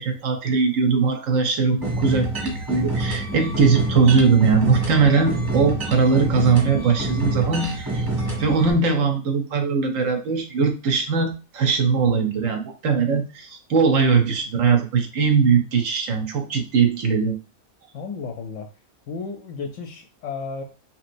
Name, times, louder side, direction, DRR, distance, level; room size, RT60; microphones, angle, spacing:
voice 1, 0.0-8.1 8.4-17.3, right 5 dB, 70° right, 4 dB, 0.9 m, -20 dB
sound 1, 1.8-8.7, right 2 dB, 15° right, 1.0 m, -27 dB
voice 2, 17.9-18.7 19.1-20.6, left 4 dB, 65° left, 3 dB, 0.8 m, -33 dB
3.0 x 2.8 x 2.5 m, 0.32 s
omnidirectional pair, 1.6 m